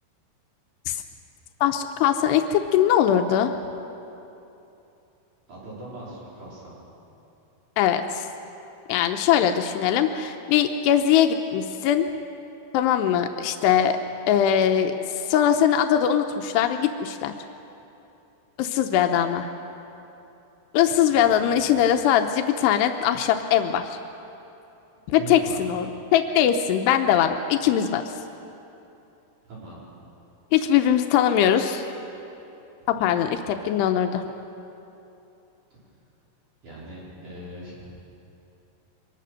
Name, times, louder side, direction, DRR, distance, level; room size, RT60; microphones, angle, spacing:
voice 1, 1.6-3.6 7.8-8.3 8.9-12.1 12.7-14.0 14.3-17.3 18.6-19.5 20.7-24.0 25.1-25.9 26.1-28.0 30.5-31.9 32.9-34.2, left 9 dB, 90° left, 6 dB, 2.9 m, -21 dB
voice 2, 5.5-6.8 14.0-14.1 21.1-22.0 25.1-25.8 29.4-29.9 32.9-33.6 36.6-37.9, right 1 dB, 45° right, -7 dB, 6.1 m, -41 dB
24.0 x 21.0 x 6.5 m, 2.9 s
omnidirectional pair, 4.8 m